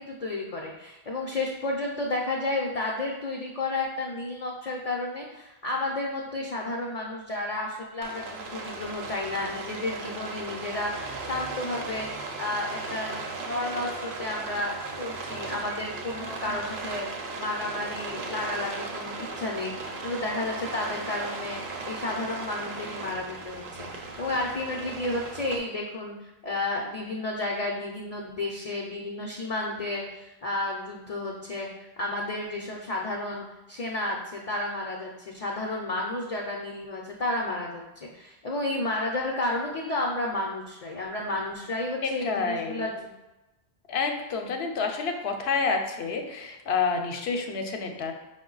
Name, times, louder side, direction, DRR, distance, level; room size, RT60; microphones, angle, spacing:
voice 1, 0.0-19.7 20.0-21.6 21.9-43.1, left 2 dB, 50° left, -1 dB, 0.5 m, -32 dB
Rain, 8.0-25.6, right 3 dB, 60° right, 0.7 m, -37 dB
voice 2, 42.2-42.9 43.9-48.1, left 4 dB, 75° left, 4 dB, 0.8 m, -28 dB
5.2 x 2.1 x 3.8 m, 1.0 s
omnidirectional pair, 1.1 m